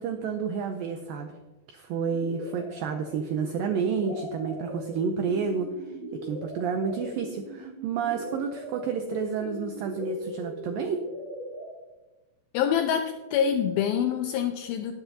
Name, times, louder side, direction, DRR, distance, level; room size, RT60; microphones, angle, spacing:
voice 1, 0.0-1.4 1.7-11.0, right 6 dB, 85° right, 5 dB, 2.0 m, -30 dB
sound 1, 2.1-11.6, right 1 dB, 20° left, 3.8 m, -40 dB
voice 2, 12.5-14.9, left 8 dB, 85° left, 6 dB, 2.1 m, -26 dB
19.5 x 7.9 x 2.8 m, 1.1 s
omnidirectional pair, 4.9 m